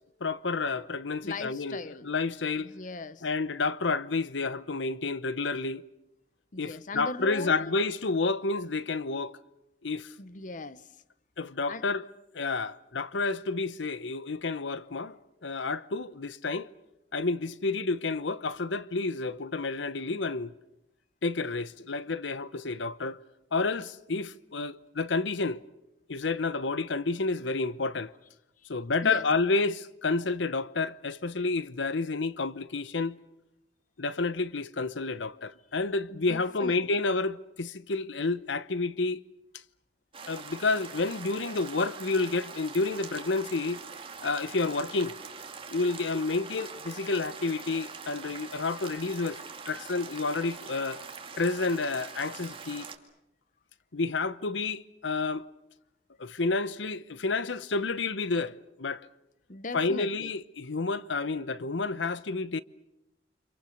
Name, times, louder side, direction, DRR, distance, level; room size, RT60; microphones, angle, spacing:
voice 1, 0.2-2.7 3.2-5.8 6.6-9.4 9.8-10.1 11.4-12.0 12.3-15.2 15.4-16.7 17.1-20.5 21.2-23.2 23.5-25.6 26.1-28.1 28.7-33.2 34.0-39.2 40.3-43.8 44.2-45.1 45.7-49.4 49.7-51.0 51.4-52.9 53.9-55.5 56.2-59.1 59.7-62.6, left 3 dB, 85° left, 0.9 m, -30 dB
voice 2, 1.2-2.1 2.6-3.3 6.5-7.7 10.2-10.9 11.7-11.9 29.0-29.3 36.1-36.9 59.5-60.3, left 2 dB, 45° left, 0.9 m, -39 dB
sound 1, 40.1-53.0, right 5 dB, 30° right, 2.3 m, -43 dB
29.5 x 27.0 x 6.6 m
head